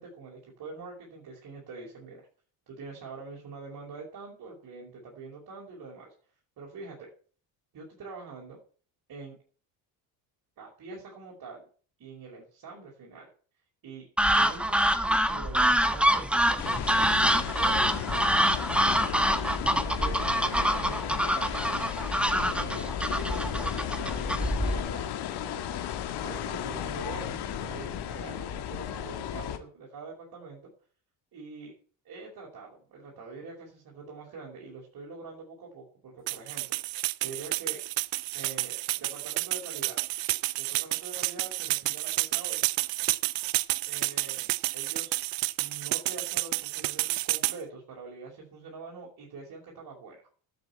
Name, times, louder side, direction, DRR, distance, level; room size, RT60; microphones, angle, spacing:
voice 1, 0.0-2.2 2.7-6.1 6.6-7.1 7.7-8.6 9.1-9.4 10.6-11.6 12.0-13.3 13.8-16.9 17.1-18.8 19.9-25.1 25.4-25.9 26.2-30.6 31.3-31.7 32.0-37.8 38.3-40.0 40.6-42.7 43.9-45.2 45.6-50.2, right 4 dB, 50° right, -2 dB, 5.4 m, -44 dB
sound 1, 14.2-24.9, equal, 5° right, 1.3 m, -26 dB
sound 2, 16.6-29.6, left 10 dB, 65° left, 2.0 m, -34 dB
sound 3, 36.3-47.6, right 21 dB, 80° right, 0.7 m, -30 dB
12.0 x 8.0 x 8.6 m, 0.42 s
cardioid pair, 100°, 43 cm